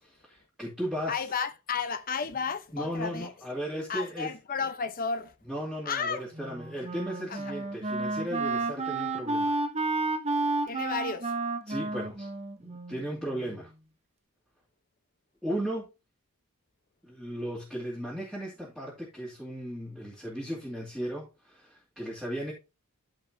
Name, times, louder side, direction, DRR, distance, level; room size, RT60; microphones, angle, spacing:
voice 1, 0.0-1.2 2.7-4.3 5.5-9.5 11.7-12.3 12.6-13.7 15.4-15.9 17.0-22.5, equal, 5° right, 2.6 m, -36 dB
voice 2, 1.1-3.3 3.9-5.3 5.9-6.3 7.3-7.4 10.7-11.3, left 5 dB, 40° left, 0.9 m, -32 dB
Wind instrument woodwind instrument, 6.3-13.5, right 3 dB, 30° right, 1.0 m, -31 dB
13.5 x 4.9 x 2.8 m
head